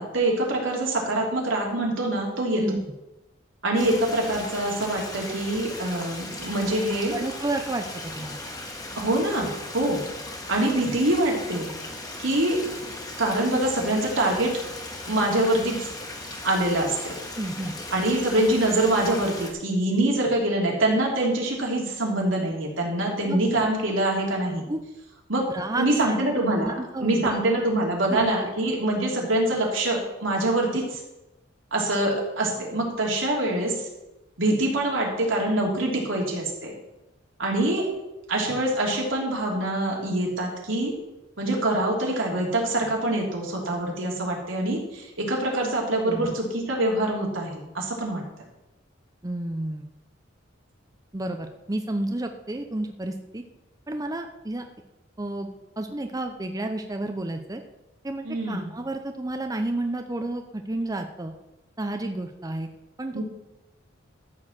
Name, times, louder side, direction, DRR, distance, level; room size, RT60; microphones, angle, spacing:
voice 1, 0.0-2.6 3.6-7.1 8.9-10.0 10.5-11.7 12.2-12.6 13.2-14.5 15.1-15.9 16.4-17.2 17.9-24.6 25.3-25.4 25.8-26.7 27.0-31.0 31.7-33.9 34.4-36.7 37.4-37.8 38.3-40.9 41.4-48.2 58.2-58.7 63.1-63.2, right 1 dB, 80° right, -1 dB, 3.2 m, -25 dB
Stream, 3.8-19.5, left 2 dB, 20° left, 1.8 m, -37 dB
voice 2, 7.1-8.4 17.4-17.7 23.3-23.4 24.7-24.8 25.5-26.2 26.5-27.7 28.1-28.3 46.1-46.3 49.2-49.9 51.1-53.4 53.9-54.7 55.2-55.5 55.8-57.6 58.0-61.3 61.8-62.7 63.0-63.2, right 2 dB, 20° right, 5 dB, 0.7 m, -31 dB
13.0 x 4.8 x 7.4 m, 0.96 s
head